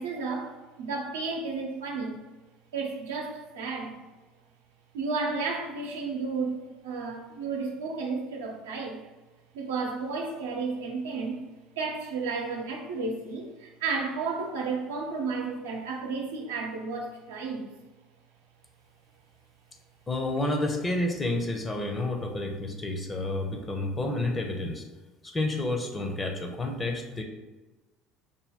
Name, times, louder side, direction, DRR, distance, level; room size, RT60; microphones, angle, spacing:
voice 1, 0.0-2.2 2.7-4.0 4.9-9.0 9.5-11.4 11.8-17.7, right 4 dB, 85° right, 0 dB, 0.7 m, -32 dB
voice 2, 20.1-24.8 25.2-27.2, left 2 dB, 25° left, 3 dB, 0.7 m, -30 dB
5.4 x 2.2 x 3.5 m, 1.2 s
hypercardioid pair, 70°, 0 cm